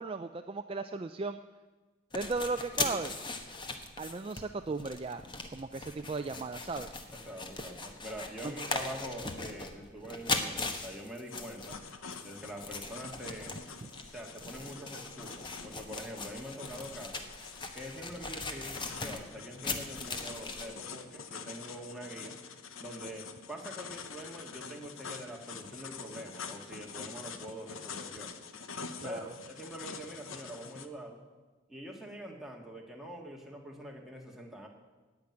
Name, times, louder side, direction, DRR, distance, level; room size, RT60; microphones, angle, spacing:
voice 1, 0.0-1.4 2.1-3.1 4.0-5.2 5.5-6.9 8.4-8.5 29.0-29.3, right 3 dB, 25° right, 8 dB, 0.4 m, -36 dB
sound 1, 2.1-20.7, left 3 dB, 25° left, 1.0 m, -39 dB
voice 2, 7.1-11.8 12.2-13.6 14.1-17.3 17.7-22.4 22.8-28.3 29.0-31.2 31.7-34.7, equal, ahead, -1 dB, 1.7 m, -44 dB
sound 2, 11.3-30.9, left 5 dB, 80° left, 1.0 m, -46 dB
17.0 x 5.9 x 9.5 m, 1.3 s
head